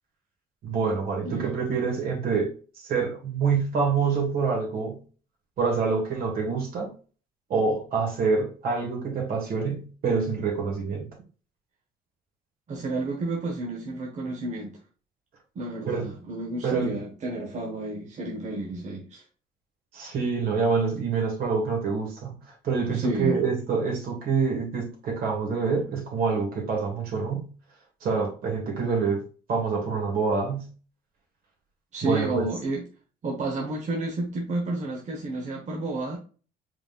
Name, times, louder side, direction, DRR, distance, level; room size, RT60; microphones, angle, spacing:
voice 1, 0.6-5.0 5.6-6.9 7.5-11.1 15.9-16.1 16.6-16.9 19.9-22.4 22.6-27.5 28.0-29.2 29.5-30.7 32.0-32.5, right 5 dB, 65° right, 1 dB, 2.1 m, -26 dB
voice 2, 1.2-1.5 12.7-14.8 15.5-19.2 22.9-23.3 31.9-32.8 33.2-36.2, right 2 dB, 45° right, -1 dB, 1.0 m, -31 dB
4.9 x 3.7 x 2.4 m, 0.38 s
cardioid pair, 110°, 17 cm